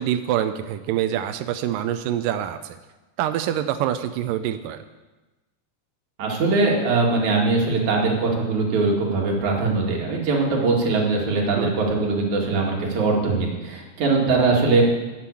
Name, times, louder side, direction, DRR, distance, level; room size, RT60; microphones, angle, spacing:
voice 1, 0.0-2.8 3.2-4.8 11.5-11.7, right 11 dB, 85° right, 10 dB, 1.9 m, -25 dB
voice 2, 6.2-14.8, right 3 dB, 55° right, -1 dB, 3.3 m, -21 dB
11.5 x 7.7 x 8.4 m, 1.2 s
omnidirectional pair, 4.4 m